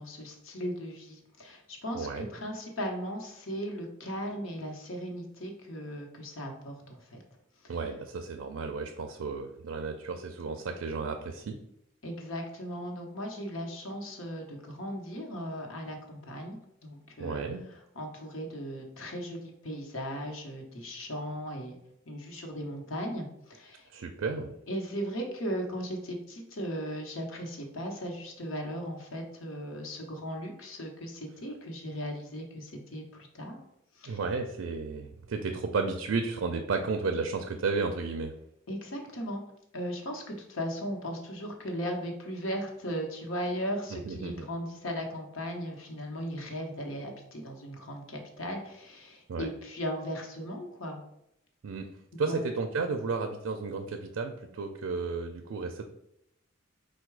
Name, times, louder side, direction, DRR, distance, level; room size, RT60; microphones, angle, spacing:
voice 1, 0.0-7.2 7.6-7.8 12.0-16.6 16.8-21.8 22.1-23.9 24.7-33.6 33.9-34.2 38.7-39.4 39.7-51.0 52.1-52.5, equal, 80° left, 2 dB, 0.9 m, -37 dB
voice 2, 1.9-2.3 7.7-11.6 17.2-17.7 23.9-24.5 34.1-38.3 43.9-44.4 49.3-49.5 51.6-55.8, right 4 dB, 80° right, 5 dB, 0.4 m, -33 dB
4.6 x 2.2 x 4.6 m, 0.80 s
head